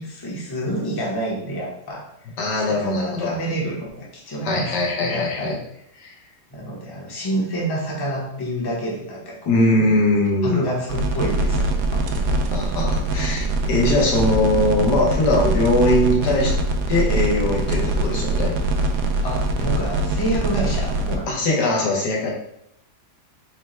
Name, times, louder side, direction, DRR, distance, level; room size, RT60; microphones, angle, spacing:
voice 1, 0.0-2.1 2.6-5.6 6.5-9.8 10.4-12.1 19.2-21.5, right 1 dB, 20° left, -4 dB, 0.6 m, -28 dB
voice 2, 2.4-3.3 4.4-5.6 6.0-6.1 9.5-10.6 12.5-16.5 16.9-18.5 21.3-22.3, left 2 dB, 75° left, -2 dB, 1.5 m, -21 dB
sound 1, 10.9-21.2, right 2 dB, 75° right, 1.0 m, -23 dB
4.4 x 2.2 x 4.2 m, 0.74 s
omnidirectional pair, 1.8 m